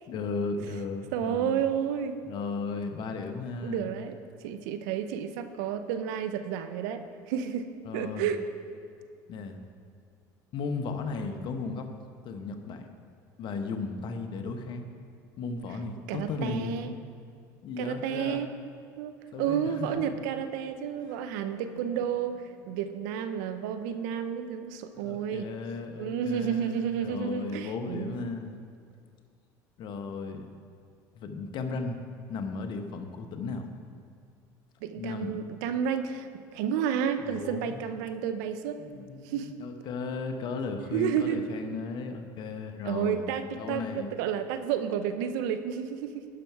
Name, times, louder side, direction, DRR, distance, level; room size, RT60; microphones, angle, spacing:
voice 1, 0.1-1.6 2.2-3.9 7.8-8.3 9.3-9.6 10.5-11.9 12.2-12.9 13.4-14.9 15.4-16.8 17.6-18.4 19.3-20.0 21.1-21.3 24.9-28.6 29.8-30.5 31.1-32.0 32.3-33.7 35.0-35.4 37.2-37.8 38.8-43.2 43.6-44.1, left 4 dB, 55° left, 6 dB, 1.0 m, -35 dB
voice 2, 1.1-2.2 3.6-4.2 4.4-7.7 7.9-8.4 16.1-16.9 17.8-18.5 19.0-19.1 19.4-25.5 26.0-28.2 34.8-38.8 39.2-39.5 40.9-41.4 42.8-46.3, right 8 dB, 80° right, 10 dB, 0.6 m, -31 dB
11.0 x 6.0 x 4.6 m, 2.3 s
supercardioid pair, 85°, 9 cm